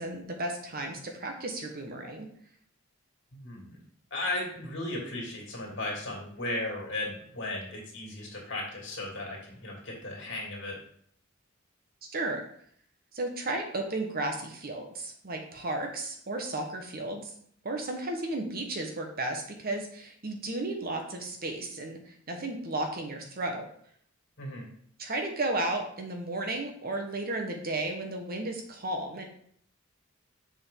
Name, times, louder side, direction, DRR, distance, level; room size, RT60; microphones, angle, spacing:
voice 1, 0.0-2.3 12.0-12.4 13.1-17.3 17.6-23.7 25.0-29.3, right 2 dB, 50° right, 3 dB, 1.3 m, -34 dB
voice 2, 3.3-3.8 4.1-10.8 24.4-24.7, left 2 dB, 65° left, -2 dB, 2.7 m, -36 dB
7.0 x 5.3 x 3.9 m, 0.63 s
head